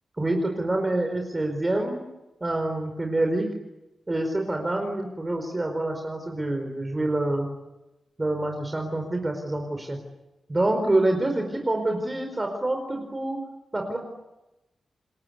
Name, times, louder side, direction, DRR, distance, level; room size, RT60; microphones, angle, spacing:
voice 1, 0.2-2.0 2.4-3.5 4.1-7.5 8.2-10.0 10.5-13.4 13.7-14.0, right 2 dB, 20° right, 3 dB, 4.6 m, -26 dB
28.5 x 21.5 x 9.4 m, 0.99 s
wide cardioid pair, 135°, 0 cm